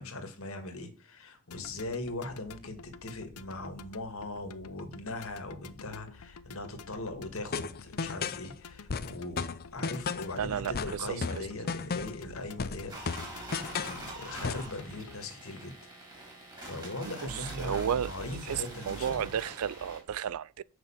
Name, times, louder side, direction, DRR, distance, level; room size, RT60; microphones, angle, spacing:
voice 1, 0.0-9.4 9.7-13.4 13.8-15.7 16.6-19.3, left 2 dB, 65° left, 2.0 m, -40 dB
sound 1, 1.5-15.2, left 5 dB, 80° left, 0.7 m, -51 dB
sound 2, 7.5-8.5 8.9-10.4 10.7-12.3 12.6-14.0 14.4-14.7, left 5 dB, 45° left, 0.6 m, -34 dB
voice 2, 10.4-11.5 17.3-18.1 18.5-20.6, right 8 dB, 70° right, 0.4 m, -33 dB
sound 3, 12.9-20.0, right 2 dB, 20° right, 3.4 m, -45 dB
6.8 x 5.8 x 7.3 m
head